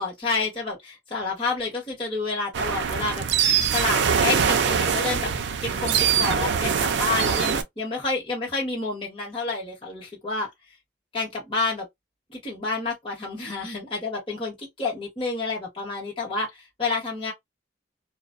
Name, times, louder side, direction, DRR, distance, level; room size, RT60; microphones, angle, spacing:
voice 1, 0.0-3.2 3.7-5.3 5.6-10.5 11.1-11.9 12.3-17.3, left 3 dB, 30° left, 1.3 m, -29 dB
sound 1, 2.5-7.6, right 7 dB, 85° right, 0.4 m, -23 dB
2.3 x 2.2 x 2.5 m
head